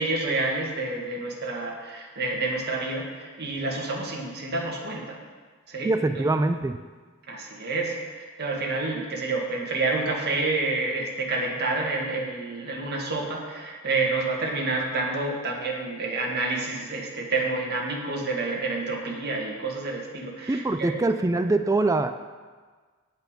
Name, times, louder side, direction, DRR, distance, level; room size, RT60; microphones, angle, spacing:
voice 1, 0.0-5.2 5.7-6.2 7.3-21.0, right 3 dB, 50° right, -2 dB, 1.8 m, -29 dB
voice 2, 5.8-6.8 20.5-22.1, right 2 dB, 15° right, 9 dB, 0.3 m, -23 dB
9.1 x 8.1 x 5.2 m, 1.5 s
head